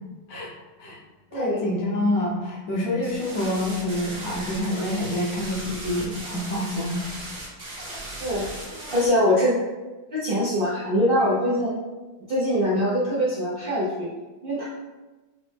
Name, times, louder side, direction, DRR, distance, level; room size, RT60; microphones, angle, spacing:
voice 1, 1.3-7.1, left 1 dB, 60° left, -3 dB, 1.1 m, -27 dB
sound 1, 3.0-9.1, right 1 dB, 35° right, 0.7 m, -37 dB
voice 2, 8.9-9.6 10.1-11.7 12.3-14.1 14.4-14.6, equal, 90° right, -7 dB, 0.4 m, -23 dB
5.7 x 2.1 x 3.3 m, 1.2 s
omnidirectional pair, 2.0 m